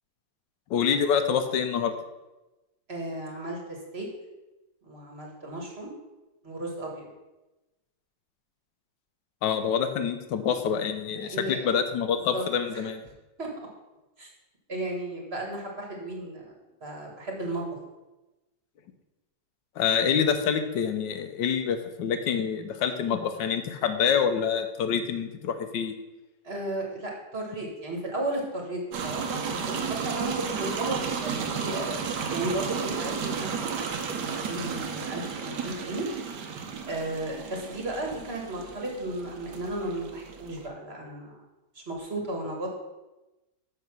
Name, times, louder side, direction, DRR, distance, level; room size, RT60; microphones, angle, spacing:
voice 1, 0.7-1.9 9.4-13.0 19.8-25.9, left 7 dB, 90° left, 8 dB, 1.4 m, -26 dB
voice 2, 2.9-4.1 4.8-5.9 6.4-7.1 11.2-11.7 12.3-12.4 12.7-12.8 13.4-13.5 14.2-14.3 14.7-16.5 16.8-17.6 26.4-33.7 34.0-36.1 36.8-41.4 41.7-42.7, right 2 dB, 35° right, 0 dB, 1.6 m, -34 dB
sound 1, 28.9-40.7, right 6 dB, 75° right, 1.5 m, -33 dB
6.2 x 5.9 x 6.0 m, 1.1 s
omnidirectional pair, 1.9 m